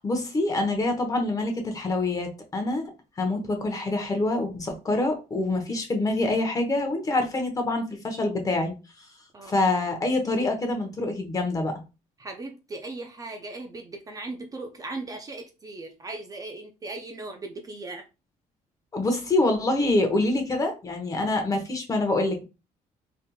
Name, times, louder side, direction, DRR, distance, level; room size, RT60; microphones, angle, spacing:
voice 1, 0.0-2.8 3.2-8.7 9.5-11.8 18.9-22.4, left 2 dB, 25° left, 0.9 m, -26 dB
voice 2, 12.2-18.1, right 2 dB, 25° right, 0.4 m, -38 dB
3.4 x 2.8 x 2.3 m
cardioid pair, 125°, 13 cm